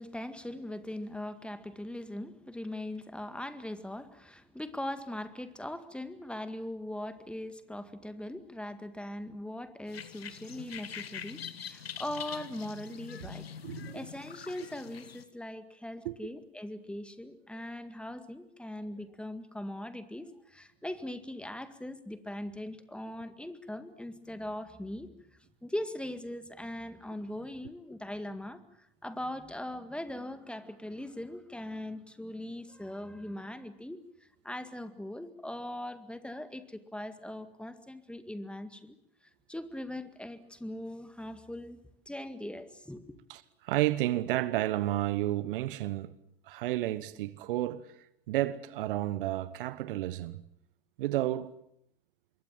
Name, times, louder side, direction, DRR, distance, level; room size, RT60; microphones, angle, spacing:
voice 1, 0.0-25.2 25.6-28.6 29.0-34.0 34.4-39.0 39.5-41.8 42.1-43.2, left 1 dB, 5° left, 2.0 m, -40 dB
sound 1, 9.9-15.2, left 8 dB, 80° left, 1.5 m, -44 dB
voice 2, 13.6-14.1 16.0-16.2 43.3-46.1 46.5-47.9 48.3-50.4 51.0-51.6, right 15 dB, 60° right, 1.1 m, -31 dB
26.0 x 22.0 x 7.5 m
figure-of-eight pair, 85°, 30 cm